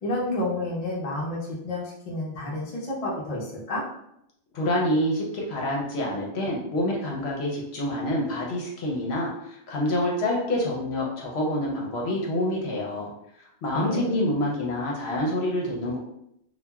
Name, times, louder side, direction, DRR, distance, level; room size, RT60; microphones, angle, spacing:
voice 1, 0.0-3.8 13.7-14.1, left 1 dB, 40° left, -4 dB, 0.6 m, -30 dB
voice 2, 4.5-13.1 13.6-16.0, left 1 dB, 70° left, -2 dB, 0.9 m, -27 dB
2.8 x 2.2 x 2.3 m, 0.76 s
omnidirectional pair, 1.2 m